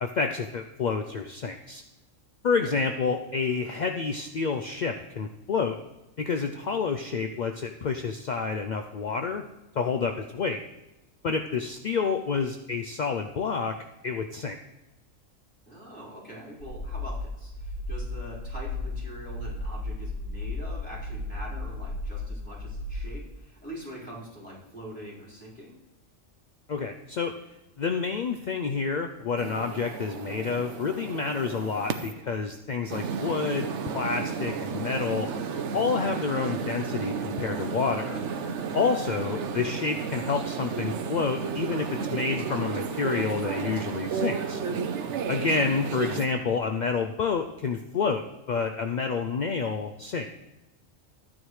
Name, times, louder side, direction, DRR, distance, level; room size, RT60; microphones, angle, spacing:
voice 1, 0.0-1.8 2.4-5.8 6.2-9.4 9.8-10.6 11.2-13.7 14.0-14.6 26.7-27.3 27.8-35.3 35.7-38.2 38.7-44.6 45.3-50.3, left 5 dB, 70° left, 5 dB, 0.4 m, -29 dB
voice 2, 15.7-25.8 39.0-39.3 45.5-45.6, right 1 dB, 5° left, -10 dB, 4.4 m, -43 dB
sound 1, 16.6-23.0, left 2 dB, 40° left, 1.9 m, -34 dB
sound 2, 29.4-32.1 32.9-46.3, right 6 dB, 65° right, 1.0 m, -32 dB
13.5 x 9.7 x 3.2 m, 0.97 s
omnidirectional pair, 1.3 m